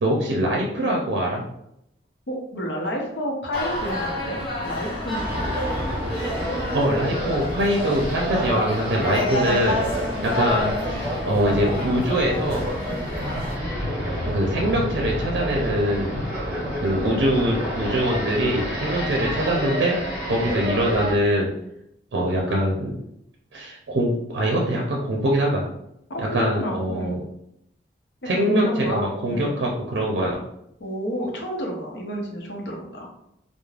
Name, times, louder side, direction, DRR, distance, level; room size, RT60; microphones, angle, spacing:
voice 1, 0.0-1.5 6.7-9.8 10.2-12.7 14.2-16.2 16.8-20.0 20.2-21.5 22.1-23.0 23.5-25.6 26.3-27.2 28.3-30.4, right 1 dB, 85° right, -2 dB, 0.5 m, -23 dB
voice 2, 2.3-5.5 12.9-13.1 26.1-27.2 28.2-29.5 30.8-33.1, equal, 85° left, 0 dB, 0.6 m, -30 dB
sound 1, 3.5-13.5, left 2 dB, 25° left, 1.1 m, -30 dB
sound 2, 5.1-21.1, equal, 15° right, 1.0 m, -28 dB
2.4 x 2.0 x 3.1 m, 0.79 s
head